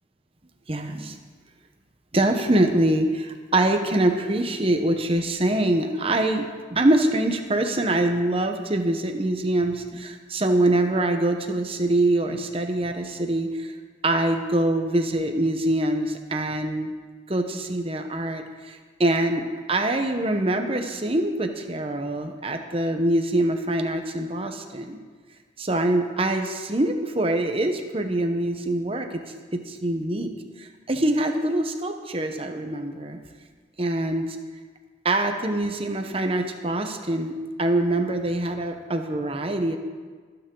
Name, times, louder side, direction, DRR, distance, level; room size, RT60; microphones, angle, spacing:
voice 1, 0.7-1.2 2.1-13.8 14.0-16.9 17.3-25.0 25.6-29.2 29.5-33.2 33.8-34.4 35.0-39.8, right 1 dB, 30° right, 5 dB, 1.0 m, -24 dB
23.5 x 9.2 x 3.9 m, 1.5 s
head